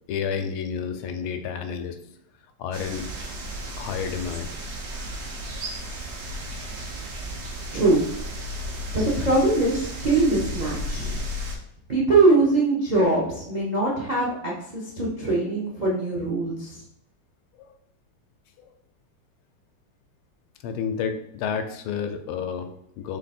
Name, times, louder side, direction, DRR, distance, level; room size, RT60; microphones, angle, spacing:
voice 1, 0.1-2.0 2.6-3.1 3.8-4.5 17.5-17.7 18.6-18.7 20.6-23.2, left 7 dB, 85° left, 7 dB, 1.4 m, -30 dB
sound 1, 2.7-11.6, equal, 55° right, 0.7 m, -34 dB
voice 2, 7.7-8.0 8.9-11.2 11.9-16.8, right 2 dB, 85° right, -5 dB, 0.3 m, -22 dB
3.9 x 3.3 x 4.2 m, 0.78 s
omnidirectional pair, 2.3 m